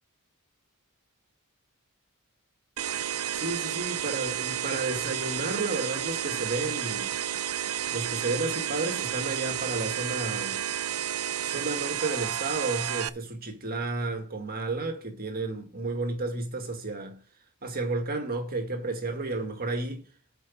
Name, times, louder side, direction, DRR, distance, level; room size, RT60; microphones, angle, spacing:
sound 1, 2.8-13.1, right 10 dB, 75° right, 0.6 m, -31 dB
voice 1, 3.4-7.1 7.9-10.6 11.4-17.2 17.6-20.0, right 3 dB, 45° right, 1.9 m, -32 dB
8.1 x 5.0 x 7.1 m
head